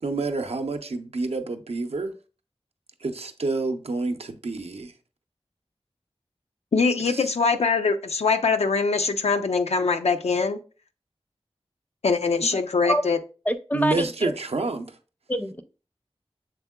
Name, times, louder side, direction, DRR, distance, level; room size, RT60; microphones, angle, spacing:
voice 1, 0.0-2.1 3.0-4.9 7.1-7.3 13.7-14.9, right 3 dB, 75° right, 0.5 m, -28 dB
voice 2, 6.7-10.6 12.0-13.2, left 4 dB, 85° left, 0.4 m, -23 dB
voice 3, 13.5-14.3 15.3-15.6, equal, 15° left, 0.5 m, -25 dB
6.7 x 3.6 x 2.2 m
wide cardioid pair, 55°, 11 cm